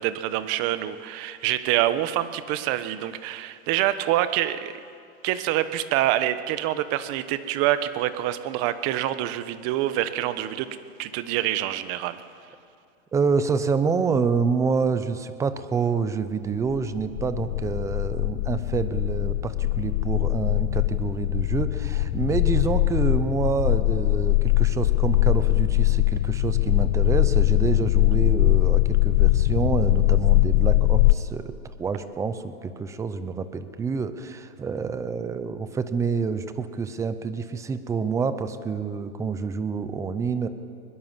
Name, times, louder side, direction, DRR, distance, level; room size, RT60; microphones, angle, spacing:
voice 1, 0.0-4.7 5.2-10.7 11.0-12.2, right 13 dB, 35° right, 12 dB, 1.1 m, -26 dB
voice 2, 13.1-31.5 31.8-40.5, right 5 dB, 10° right, 12 dB, 0.5 m, -27 dB
sound 1, 16.7-31.1, left 19 dB, 60° left, 0.6 m, -21 dB
21.5 x 21.0 x 7.4 m, 2.3 s
supercardioid pair, 145°, 43 cm